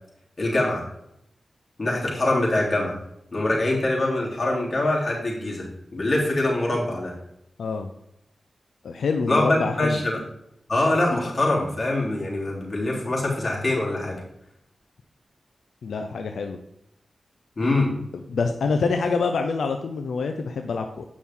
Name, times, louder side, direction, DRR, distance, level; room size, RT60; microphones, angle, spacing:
voice 1, 0.4-0.8 1.8-3.0 3.3-5.7 5.9-7.1 9.3-10.2 10.7-14.2 17.6-17.9, left 2 dB, 45° left, -4 dB, 3.4 m, -24 dB
voice 2, 7.6-7.9 8.8-10.0 15.8-16.6 18.3-21.0, left 4 dB, 90° left, 5 dB, 0.6 m, -26 dB
8.6 x 6.1 x 3.7 m, 0.79 s
cardioid pair, 55°, 0 cm